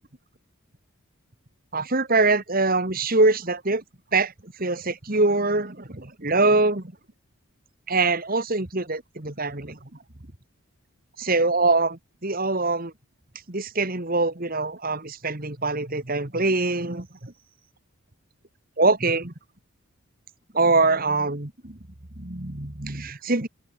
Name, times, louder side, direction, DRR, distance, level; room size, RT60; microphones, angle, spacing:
voice 1, 1.7-3.8 4.1-4.3 4.6-6.8 7.9-9.8 11.2-12.9 13.5-17.3 18.8-19.3 20.5-21.8 22.2-23.5, right 3 dB, 40° right, 1.9 m, -23 dB
open air
head